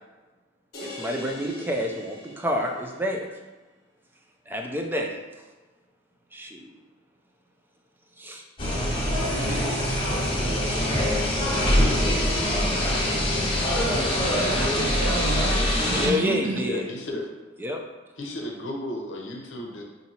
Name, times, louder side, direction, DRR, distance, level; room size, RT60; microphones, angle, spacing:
sound 1, 0.7-3.1, left 2 dB, 50° left, 1.2 m, -42 dB
voice 1, 0.8-3.3 4.5-5.1 6.3-6.7 8.2-8.4 15.9-16.8 17.6-17.8, equal, 10° right, 2 dB, 0.4 m, -28 dB
sound 2, 8.6-16.1, left 1 dB, 25° left, 1.2 m, -24 dB
voice 2, 13.9-16.6, right 2 dB, 85° right, 4 dB, 0.5 m, -31 dB
voice 3, 16.6-17.3 18.2-19.8, left 1 dB, 70° left, 1 dB, 0.7 m, -33 dB
5.4 x 2.7 x 2.9 m, 1.2 s
head